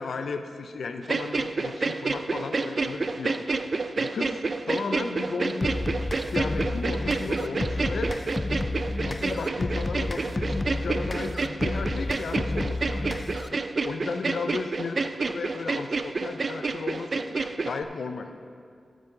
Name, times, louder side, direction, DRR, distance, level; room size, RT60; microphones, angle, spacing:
voice 1, 0.0-3.4 4.0-5.7 6.3-8.2 9.1-13.1 13.8-15.0 15.3-17.2 17.6-18.3, left 4 dB, 80° left, 7 dB, 0.5 m, -34 dB
sound 1, 1.0-17.8, right 3 dB, 50° right, 0.4 m, -29 dB
sound 2, 5.6-13.6, left 2 dB, 25° left, 0.3 m, -31 dB
9.8 x 8.7 x 3.9 m, 2.2 s
wide cardioid pair, 80°, 0 cm